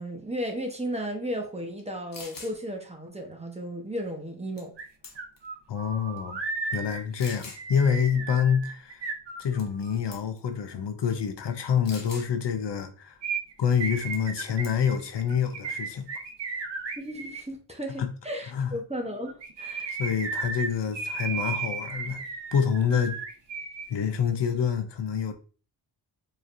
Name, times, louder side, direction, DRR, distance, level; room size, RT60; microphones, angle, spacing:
voice 1, 0.0-4.7 16.9-20.0, equal, 15° right, 1.0 m, -34 dB
sound 1, 1.8-1.9 2.1-2.6 4.6-4.8 5.0-5.5 6.2-6.3 7.2-7.6 9.6-9.8 10.1-10.4 11.9-12.3 14.1-14.3 14.6-15.0, left 3 dB, 50° left, 1.1 m, -43 dB
sound 2, 4.8-4.9 5.2-9.9 13.2-17.4 19.3-23.9 24.1-24.2, right 4 dB, 75° right, 0.9 m, -35 dB
voice 2, 5.7-6.4 6.7-9.1 9.4-13.2 13.6-16.1 18.0-18.1 18.5-18.7 20.0-22.2 22.5-23.2 23.9-25.3, left 7 dB, 70° left, 0.7 m, -27 dB
4.8 x 3.1 x 2.6 m
wide cardioid pair, 75°, 43 cm